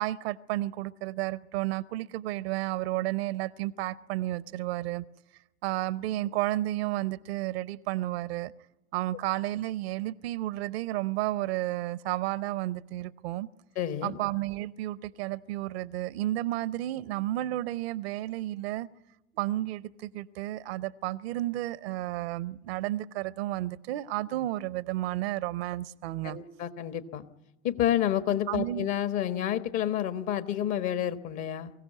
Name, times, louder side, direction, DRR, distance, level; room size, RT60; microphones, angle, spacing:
voice 1, 0.0-5.0 5.6-8.5 8.9-13.5 14.0-18.9 19.4-26.4 28.5-28.9, right 15 dB, 60° right, 0.7 m, -32 dB
voice 2, 13.8-14.2 26.2-27.2 27.6-31.7, left 11 dB, 50° left, 1.4 m, -29 dB
23.5 x 16.0 x 9.2 m
figure-of-eight pair, 70°, 35 cm